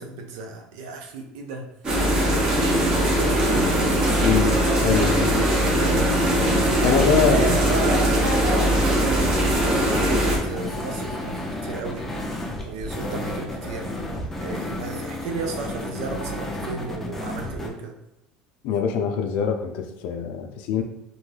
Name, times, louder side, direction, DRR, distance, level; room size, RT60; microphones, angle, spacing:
voice 1, 0.0-1.7 2.0-3.4 4.9-6.1 6.8-9.2 9.6-12.0 12.6-13.9 14.4-17.9, right 4 dB, 90° right, 3 dB, 0.5 m, -34 dB
sound 1, 1.8-10.4, right 1 dB, 35° right, 0.8 m, -21 dB
sound 2, 3.3-14.7, right 1 dB, 70° right, 1.4 m, -35 dB
sound 3, 3.5-17.7, left 1 dB, 10° left, 0.5 m, -32 dB
voice 2, 4.2-4.5 4.8-5.3 6.8-7.5 18.6-20.8, left 7 dB, 70° left, 5 dB, 0.4 m, -23 dB
2.6 x 2.2 x 3.2 m, 0.83 s
cardioid pair, 125°, 2 cm